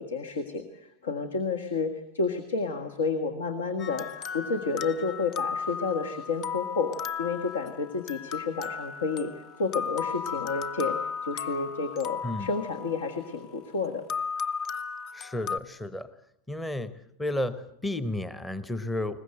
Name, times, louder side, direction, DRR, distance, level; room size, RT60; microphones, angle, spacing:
voice 1, 0.0-4.1 4.3-11.0 11.2-14.0, left 4 dB, 65° left, 8 dB, 1.7 m, -30 dB
sound 1, 3.8-13.5 14.1-15.6, left 6 dB, 35° left, 0.8 m, -35 dB
voice 2, 15.1-16.1 16.5-16.9 17.2-19.2, left 1 dB, 10° left, 14 dB, 1.0 m, -32 dB
22.0 x 20.0 x 7.9 m, 0.76 s
figure-of-eight pair, 90°, 0 cm